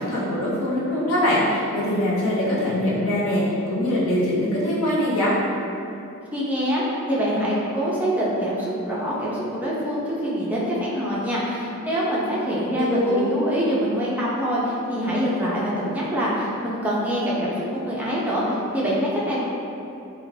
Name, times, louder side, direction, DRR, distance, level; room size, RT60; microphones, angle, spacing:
voice 1, 0.0-3.4 3.7-5.3 12.7-13.3, left 1 dB, 70° left, -7 dB, 0.7 m, -22 dB
voice 2, 6.3-19.4, equal, 5° right, -7 dB, 0.4 m, -25 dB
2.4 x 2.2 x 3.1 m, 2.8 s
head